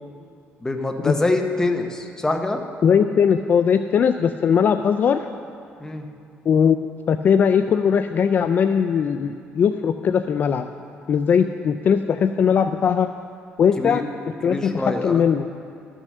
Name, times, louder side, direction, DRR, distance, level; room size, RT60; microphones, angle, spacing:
voice 1, 0.6-2.6 5.8-6.1 13.8-14.0 14.4-15.2, left 2 dB, 15° left, 4 dB, 0.8 m, -25 dB
voice 2, 2.8-5.3 6.5-10.7 11.1-13.1 13.6-14.0 14.4-15.5, left 7 dB, 45° left, 8 dB, 0.3 m, -19 dB
13.0 x 6.2 x 6.6 m, 2.4 s
cardioid pair, 120°, 4 cm